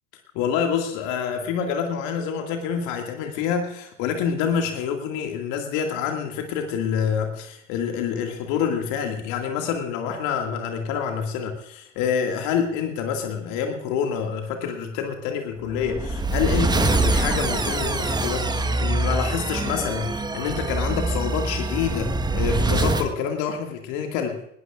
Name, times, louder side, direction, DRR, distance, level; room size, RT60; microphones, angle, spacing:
voice 1, 0.3-24.4, left 7 dB, 50° left, 4 dB, 2.2 m, -27 dB
sound 1, 15.7-23.1, right 2 dB, 10° right, 1.3 m, -24 dB
20.0 x 19.0 x 2.5 m, 0.74 s
figure-of-eight pair, 75°, 38 cm